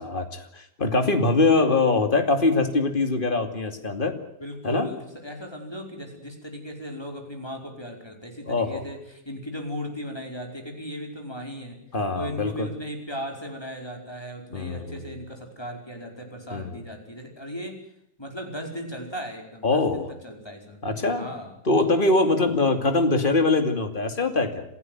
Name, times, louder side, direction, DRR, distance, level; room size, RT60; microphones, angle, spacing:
voice 1, 0.0-4.2 4.6-4.9 8.5-8.8 11.9-12.7 14.5-15.0 16.5-16.8 19.6-20.1 20.8-21.3 21.7-24.6, left 3 dB, 30° left, 7 dB, 2.7 m, -23 dB
voice 2, 4.4-11.8 12.1-17.8 18.2-20.8 21.2-21.5, equal, 15° left, 2 dB, 5.1 m, -37 dB
28.0 x 15.5 x 9.4 m, 0.75 s
omnidirectional pair, 1.9 m